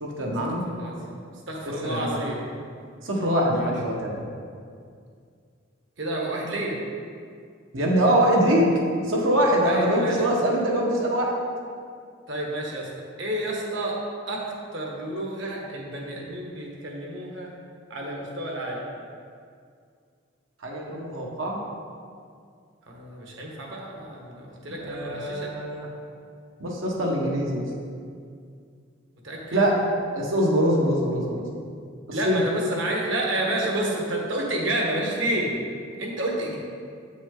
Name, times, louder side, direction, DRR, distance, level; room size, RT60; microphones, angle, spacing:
voice 1, 0.0-0.6 1.6-2.2 3.0-4.2 7.7-8.7 9.1-11.3 20.6-21.6 24.7-25.9 26.6-27.6 29.5-29.7 30.1-31.4 32.2-32.4, equal, 85° right, -2 dB, 1.4 m, -23 dB
voice 2, 0.6-1.2 1.5-2.4 3.5-3.7 6.0-6.8 9.6-10.2 12.3-12.9 13.2-14.0 14.3-17.5 17.9-18.8 22.9-25.5 29.2-29.6 32.1-35.6 36.0-36.6, right 1 dB, 70° right, -1 dB, 1.3 m, -30 dB
7.9 x 6.0 x 3.9 m, 2.2 s
head